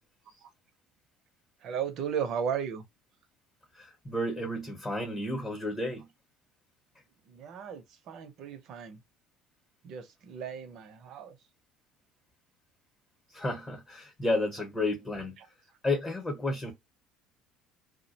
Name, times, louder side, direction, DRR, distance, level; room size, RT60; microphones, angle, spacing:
voice 1, 1.6-2.8 7.3-9.0 9.8-11.4 15.4-15.5, right 7 dB, 55° right, 0.7 m, -35 dB
voice 2, 3.7-6.1 13.3-15.4 15.8-16.7, left 2 dB, 20° left, 1.0 m, -32 dB
2.4 x 2.1 x 2.7 m
cardioid pair, 125°, 0 cm